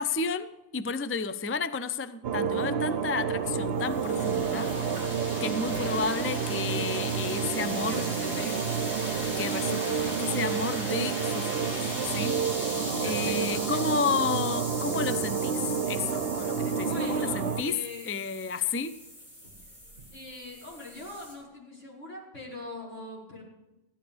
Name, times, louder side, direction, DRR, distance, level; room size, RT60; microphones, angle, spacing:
voice 1, 0.0-4.7 5.4-8.0 9.4-19.0, left 5 dB, 20° left, 13 dB, 0.3 m, -32 dB
sound 1, 2.2-17.6, right 6 dB, 60° right, 0.9 m, -30 dB
sound 2, 3.1-21.3, equal, 45° left, 5.8 m, -39 dB
voice 2, 7.9-8.7 9.8-10.2 12.9-14.1 16.8-18.1 20.1-23.4, left 2 dB, 75° left, -5 dB, 5.2 m, -42 dB
16.0 x 12.0 x 5.1 m, 1.0 s
omnidirectional pair, 1.3 m